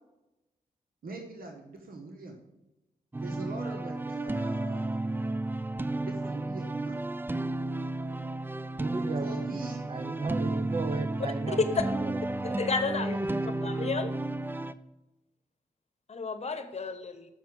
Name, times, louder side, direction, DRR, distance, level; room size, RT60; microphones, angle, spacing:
voice 1, 1.0-2.4 3.2-5.0 6.0-7.0 9.2-9.8, right 3 dB, 75° right, 3 dB, 1.4 m, -42 dB
sound 1, 3.1-14.7, right 2 dB, 15° right, 0.4 m, -32 dB
voice 2, 8.8-9.3 9.9-12.6 13.2-13.6, right 3 dB, 40° right, 9 dB, 0.8 m, -35 dB
voice 3, 12.4-13.1 13.6-14.1 16.1-17.3, left 4 dB, 45° left, 9 dB, 1.0 m, -32 dB
7.1 x 5.8 x 7.6 m, 0.97 s
cardioid pair, 65°, 15 cm